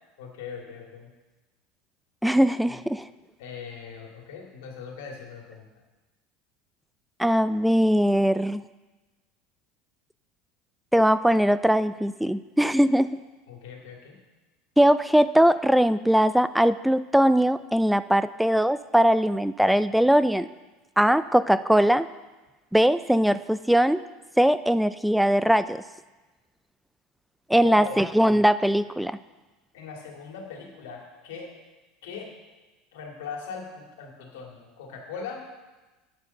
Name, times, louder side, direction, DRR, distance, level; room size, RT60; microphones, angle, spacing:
voice 1, 0.2-1.1 2.7-2.8 3.4-5.6 13.5-14.2 27.6-28.0 29.7-31.5 32.0-32.3 32.9-35.5, left 5 dB, 75° left, 1 dB, 2.2 m, -39 dB
voice 2, 2.2-3.0 7.2-8.6 10.9-13.2 14.8-20.5 21.0-22.1 22.7-24.0 24.4-25.8 27.5-29.2, equal, ahead, 14 dB, 0.3 m, -21 dB
9.5 x 6.6 x 6.7 m, 1.2 s
hypercardioid pair, 90°, 0 cm